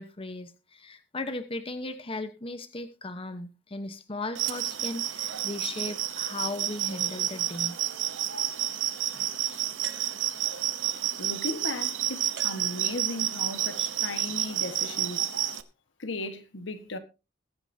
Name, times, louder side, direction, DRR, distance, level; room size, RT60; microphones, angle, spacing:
voice 1, 0.0-7.8, left 2 dB, 30° left, 1.0 m, -37 dB
sound 1, 4.3-15.6, right 12 dB, 85° right, 0.9 m, -30 dB
sound 2, 9.8-10.7 12.4-13.3, right 7 dB, 65° right, 1.6 m, -47 dB
voice 2, 11.2-15.3 16.0-17.0, left 2 dB, 75° left, 1.4 m, -36 dB
21.0 x 8.9 x 2.7 m
head